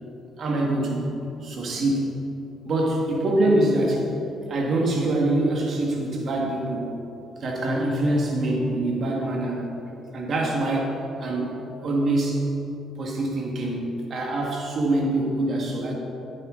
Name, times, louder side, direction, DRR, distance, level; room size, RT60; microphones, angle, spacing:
voice 1, 0.4-1.1 1.4-2.1 2.7-4.0 4.5-6.9 7.4-9.7 10.1-10.9 11.2-11.5 11.8-12.4 13.0-15.9, right 1 dB, 55° right, -1 dB, 2.1 m, -24 dB
11.0 x 9.1 x 4.1 m, 2.9 s
hypercardioid pair, 55°, 0 cm